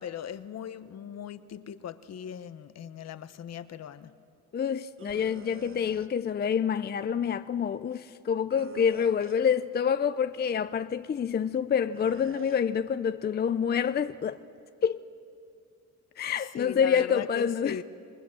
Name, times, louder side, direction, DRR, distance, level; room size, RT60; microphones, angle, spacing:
voice 1, 0.0-4.1 16.5-17.8, left 8 dB, 60° left, 1.0 m, -39 dB
voice 2, 4.5-14.4 14.8-15.0 16.2-17.8, left 7 dB, 35° left, 0.5 m, -27 dB
sound 1, 5.0-6.1 8.5-9.5 11.9-12.6, right 6 dB, 45° right, 1.1 m, -48 dB
27.5 x 19.5 x 7.6 m
cardioid pair, 90°, 30 cm